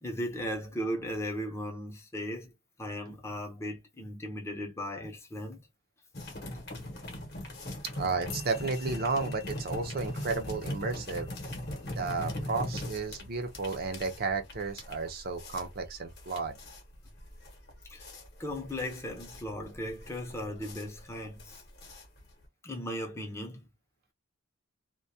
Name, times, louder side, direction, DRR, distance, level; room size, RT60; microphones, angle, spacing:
voice 1, 0.0-2.5 2.8-5.7 17.8-18.1 18.4-21.6 22.6-23.7, equal, 15° left, 0.5 m, -37 dB
sound 1, 6.1-22.4, left 1 dB, 45° left, 0.8 m, -40 dB
voice 2, 7.9-11.3 12.0-16.6, right 4 dB, 45° right, 0.5 m, -33 dB
sound 2, 8.3-14.9, left 8 dB, 70° left, 0.5 m, -53 dB
2.2 x 2.1 x 2.6 m
head